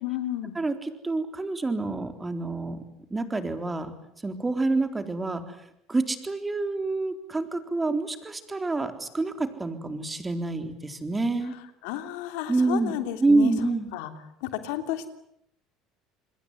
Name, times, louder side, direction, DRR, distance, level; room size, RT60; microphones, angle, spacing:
voice 1, 0.0-0.5 11.8-13.5 13.9-14.1 14.4-15.1, left 12 dB, 80° left, 9 dB, 3.1 m, -32 dB
voice 2, 0.5-2.8 3.1-3.9 4.2-5.4 5.9-11.6 12.5-12.9 13.2-13.9, right 3 dB, 15° right, 8 dB, 3.9 m, -27 dB
27.5 x 21.5 x 9.7 m, 0.75 s
supercardioid pair, 105°, 0 cm